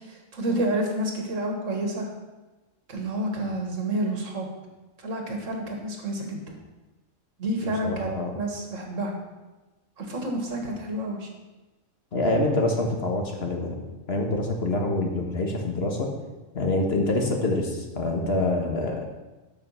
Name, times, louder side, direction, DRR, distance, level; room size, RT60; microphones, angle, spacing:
voice 1, 0.1-2.1 2.9-4.5 5.0-6.6 7.4-9.1 10.0-11.3, right 1 dB, 75° right, 2 dB, 2.0 m, -29 dB
voice 2, 7.6-8.3 12.1-13.8 14.1-16.1 16.5-19.1, left 2 dB, 50° left, 2 dB, 1.7 m, -26 dB
13.0 x 5.7 x 5.7 m, 1.1 s
omnidirectional pair, 1.3 m